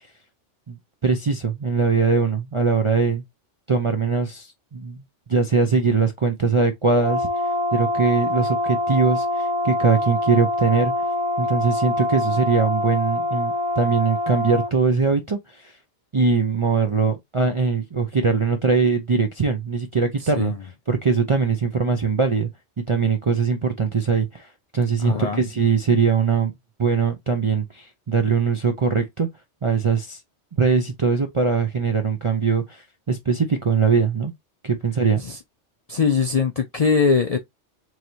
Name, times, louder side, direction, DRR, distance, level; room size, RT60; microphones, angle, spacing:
voice 1, 1.0-3.2 3.7-5.0 5.3-7.3 7.7-10.9 11.4-15.7 16.1-20.5 20.9-22.5 22.9-26.5 26.8-29.3 29.6-30.2 30.6-32.8 33.1-34.3 34.6-35.2, right 5 dB, 45° right, 0.4 m, -21 dB
Brass instrument, 7.0-14.7, left 2 dB, 65° right, 1.6 m, -25 dB
voice 2, 25.0-25.4 35.2-35.4 35.9-37.4, left 5 dB, 55° left, 0.4 m, -21 dB
4.4 x 3.2 x 2.6 m
omnidirectional pair, 1.2 m